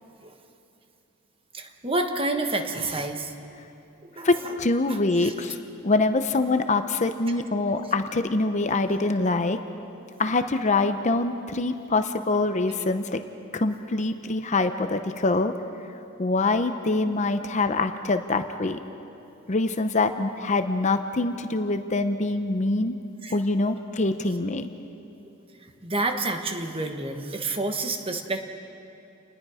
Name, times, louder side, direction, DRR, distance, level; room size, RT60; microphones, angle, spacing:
voice 1, 1.5-3.3 4.1-4.5 4.9-5.3 23.2-23.4 25.8-28.5, right 2 dB, 25° right, 5 dB, 1.3 m, -29 dB
voice 2, 4.2-5.6 5.8-9.6 10.2-13.2 13.5-15.5 16.2-18.8 19.5-23.0 23.3-24.7, left 2 dB, 35° left, 9 dB, 0.7 m, -24 dB
29.0 x 20.5 x 5.0 m, 2.8 s
head